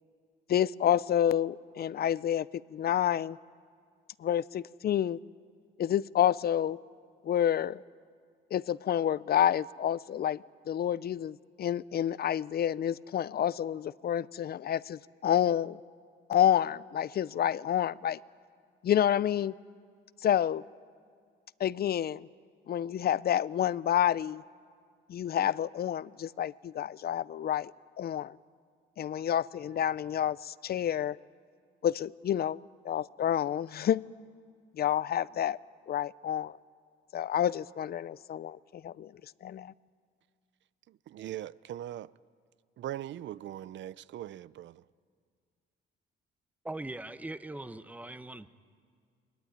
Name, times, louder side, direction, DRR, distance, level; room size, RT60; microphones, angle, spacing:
voice 1, 0.5-3.4 4.2-5.2 5.8-6.8 7.2-7.8 8.5-15.8 16.3-18.2 18.8-19.5 20.2-20.6 21.6-22.3 22.7-24.4 25.1-27.7 28.0-28.4 29.0-31.2 31.8-34.0 34.7-35.6 35.9-36.6 37.1-39.1 39.4-39.7, left 10 dB, 50° left, 0.5 m, -29 dB
voice 2, 40.9-42.1 42.8-44.8, right 12 dB, 70° right, 0.6 m, -40 dB
voice 3, 46.6-48.5, right 2 dB, 5° right, 0.9 m, -40 dB
22.0 x 21.0 x 9.6 m
cardioid pair, 90°, 20 cm